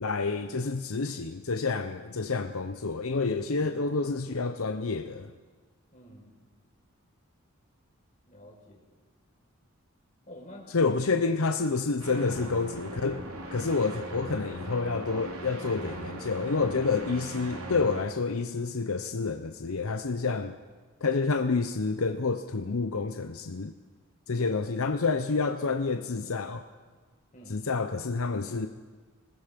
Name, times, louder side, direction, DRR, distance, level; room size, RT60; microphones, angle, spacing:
voice 1, 0.0-5.3 10.7-13.2 13.5-20.6 21.0-23.7 24.3-26.6 27.5-28.7, left 4 dB, 80° left, 7 dB, 0.8 m, -29 dB
voice 2, 5.9-6.3 8.3-8.8 10.3-10.9 24.4-24.7 27.3-27.6, left 1 dB, 35° left, -2 dB, 5.2 m, -48 dB
sound 1, 12.0-18.0, right 1 dB, 85° right, 2.9 m, -40 dB
25.5 x 19.5 x 5.3 m, 1.4 s
head